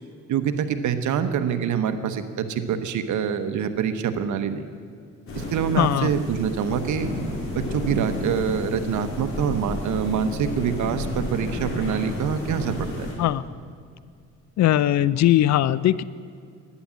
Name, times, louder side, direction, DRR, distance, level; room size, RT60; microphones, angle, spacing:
voice 1, 0.3-4.7 5.4-7.1 7.5-13.1, right 7 dB, 75° right, 9 dB, 1.1 m, -25 dB
sound 1, 5.3-13.1, left 2 dB, 45° left, 4.2 m, -31 dB
voice 2, 5.8-6.1 13.2-13.4 14.6-16.0, left 13 dB, 65° left, 18 dB, 0.5 m, -20 dB
11.5 x 10.0 x 8.5 m, 2.2 s
cardioid pair, 90°, 30 cm